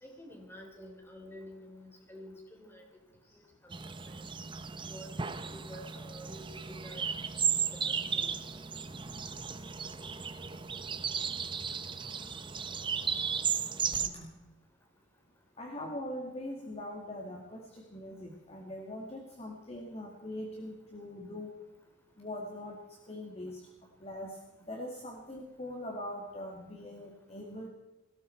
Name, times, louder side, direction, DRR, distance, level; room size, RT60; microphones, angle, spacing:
voice 1, 0.0-2.8 3.6-3.7 4.0-4.2 4.9-5.1 5.5-7.0 8.1-8.3, equal, 10° left, 2 dB, 3.8 m, -49 dB
sound 1, 3.7-14.1, right 6 dB, 25° right, 0.9 m, -35 dB
voice 2, 13.9-14.3 15.6-21.5 22.2-23.7 24.0-24.4 24.7-27.7, left 1 dB, 30° left, 1 dB, 2.0 m, -42 dB
19.5 x 17.0 x 4.4 m, 1.1 s
head